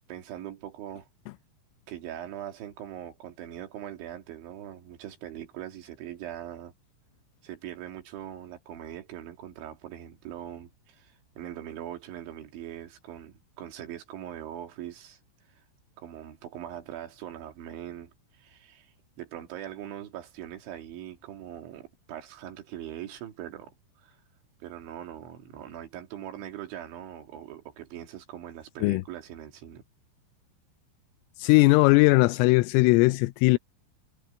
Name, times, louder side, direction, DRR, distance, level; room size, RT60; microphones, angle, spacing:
voice 1, 0.1-1.1 1.9-6.7 7.4-15.2 15.5-15.6 16.0-24.2 24.6-29.8, right 11 dB, 65° right, 4.5 m, -41 dB
voice 2, 31.4-33.6, left 23 dB, 85° left, 3.2 m, -19 dB
omnidirectional pair, 5.9 m